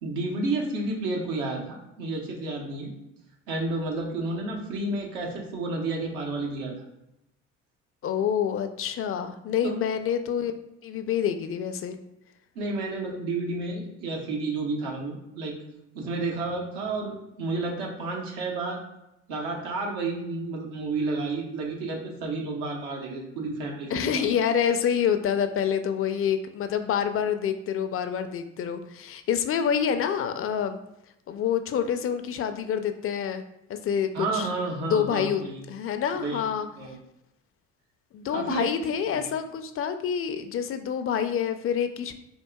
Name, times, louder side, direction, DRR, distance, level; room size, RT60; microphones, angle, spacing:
voice 1, 0.0-2.9 3.5-6.7 9.6-9.8 12.6-15.6 15.9-18.8 19.3-24.3 34.1-35.6 36.1-36.4 36.8-37.0 38.3-38.7 39.1-39.2, right 2 dB, 85° right, 1 dB, 0.9 m, -31 dB
voice 2, 8.0-10.5 10.8-12.0 23.9-30.8 31.3-33.4 33.7-34.5 34.8-35.4 35.7-36.7 38.1-42.1, left 8 dB, 40° left, 8 dB, 0.4 m, -27 dB
4.6 x 2.4 x 2.2 m, 0.85 s
hypercardioid pair, 60°, 33 cm